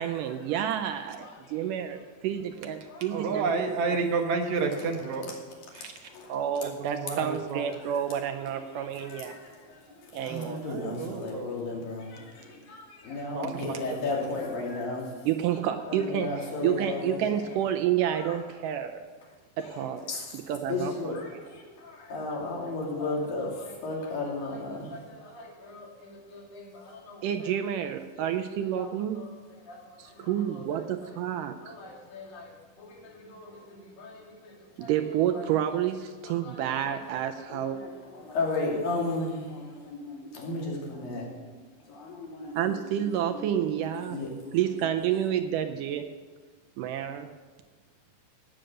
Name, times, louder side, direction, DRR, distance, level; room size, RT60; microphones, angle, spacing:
voice 1, 0.0-3.5 3.9-4.0 6.3-9.4 10.1-10.6 15.3-16.3 16.6-19.0 19.6-20.1 20.5-20.9 27.2-29.2 30.0-31.8 34.8-37.8 42.6-44.2 44.5-46.0 46.8-47.3, right 10 dB, 80° right, 7 dB, 2.0 m, -29 dB
voice 2, 0.8-2.0 2.9-3.5 4.7-5.2 5.7-6.4 7.7-15.5 15.8-17.5 18.1-18.4 19.6-27.5 28.1-31.1 31.6-35.5 36.2-41.2 41.9-42.8 43.2-44.8, left 3 dB, 75° left, -3 dB, 4.3 m, -36 dB
voice 3, 3.1-5.3 5.8-5.9 6.6-7.7 10.7-11.6 13.3-14.0, right 4 dB, 65° right, 3 dB, 2.2 m, -30 dB
17.5 x 6.6 x 6.6 m, 1.4 s
omnidirectional pair, 4.2 m